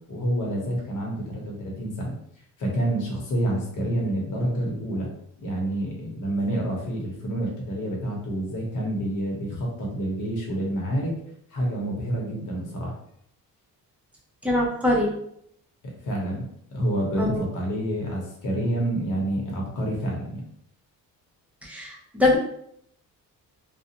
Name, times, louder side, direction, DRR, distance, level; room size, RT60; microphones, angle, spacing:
voice 1, 0.1-2.1 2.6-5.1 5.4-11.1 11.5-12.9 16.0-20.4, right 1 dB, 55° left, -1 dB, 1.1 m, -28 dB
voice 2, 14.4-15.1 17.2-17.4 21.6-22.4, left 2 dB, 5° right, -4 dB, 0.7 m, -23 dB
2.4 x 2.3 x 2.8 m, 0.71 s
cardioid pair, 105°, 36 cm